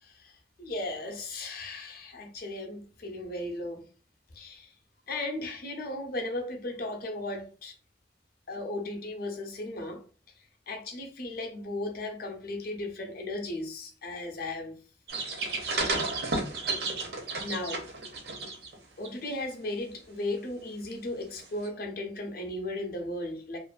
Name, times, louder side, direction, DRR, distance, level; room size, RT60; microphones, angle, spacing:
voice 1, 0.0-3.8 4.3-4.7 5.1-7.7 8.5-10.0 10.7-14.8 17.4-17.8 19.0-23.6, left 2 dB, 50° left, 0.5 m, -36 dB
sound 1, 15.1-18.8 19.0-19.3 21.6-21.7, right 3 dB, 55° right, 0.5 m, -32 dB
2.4 x 2.2 x 2.3 m
head